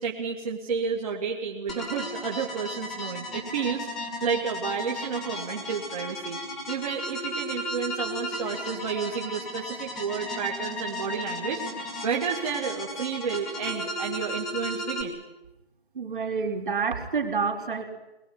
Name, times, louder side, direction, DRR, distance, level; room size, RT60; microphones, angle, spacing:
voice 1, 0.0-6.4 6.7-11.6 12.0-15.2 16.7-16.8, right 6 dB, 35° right, -2 dB, 2.5 m, -31 dB
sound 1, 1.7-15.0, left 1 dB, ahead, 1.8 m, -35 dB
voice 2, 15.9-17.8, right 5 dB, 50° right, 4 dB, 4.2 m, -28 dB
23.0 x 21.0 x 9.8 m, 0.99 s
figure-of-eight pair, 155°, 33 cm